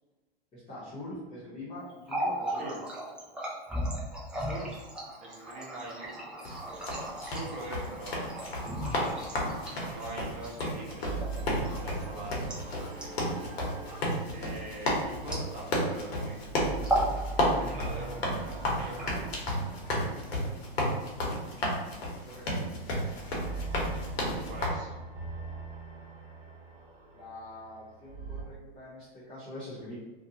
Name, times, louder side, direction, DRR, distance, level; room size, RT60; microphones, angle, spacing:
voice 1, 0.5-2.8 14.7-14.9 21.6-22.6 27.1-30.0, left 1 dB, 20° left, -10 dB, 0.8 m, -44 dB
Water tap faucet, 1.9-15.9 16.2-16.4 16.8-17.2 17.5-18.2 18.8-19.6, right 1 dB, 5° right, 0.3 m, -37 dB
voice 2, 4.3-4.8 5.2-6.2 7.2-8.2 9.8-13.1 14.3-16.5 17.4-19.2 24.5-24.9, right 2 dB, 25° right, -4 dB, 0.9 m, -43 dB
sound 1, 6.4-24.7, left 1 dB, 75° left, 0.9 m, -32 dB
sound 2, 11.0-16.0 16.3-21.7 22.4-28.4, right 3 dB, 55° right, 1.0 m, -41 dB
2.5 x 2.2 x 2.7 m, 1.2 s
hypercardioid pair, 120°, 31 cm